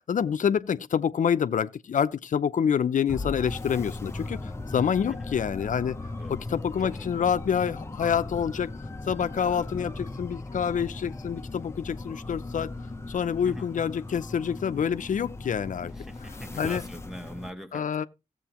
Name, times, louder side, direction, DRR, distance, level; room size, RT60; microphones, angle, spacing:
voice 1, 0.0-6.0 6.3-8.7 9.1-12.7 13.1-15.9 16.6-16.8 17.7-18.1, left 7 dB, 80° left, 0.5 m, -27 dB
sound 1, 3.1-17.5, left 2 dB, 20° left, 0.7 m, -38 dB
voice 2, 6.8-7.3 13.4-13.7 15.9-18.1, equal, 5° right, 1.0 m, -42 dB
16.0 x 7.7 x 2.9 m
wide cardioid pair, 150°, 13 cm